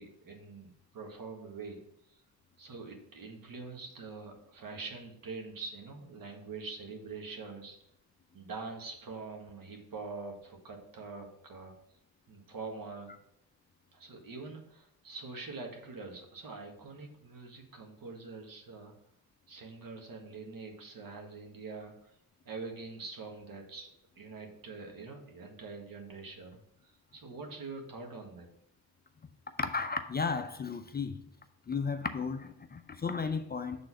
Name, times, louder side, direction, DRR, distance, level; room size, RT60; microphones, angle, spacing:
voice 1, 0.0-1.8 2.1-2.2 2.6-7.8 8.3-11.7 12.3-13.2 13.9-18.9 19.5-22.2 22.4-23.9 24.1-28.5, right 4 dB, 60° right, 1.6 m, -44 dB
voice 2, 29.6-31.2 31.7-33.9, left 5 dB, 25° left, 0.5 m, -34 dB
6.1 x 3.8 x 6.0 m
cardioid pair, 95°, 37 cm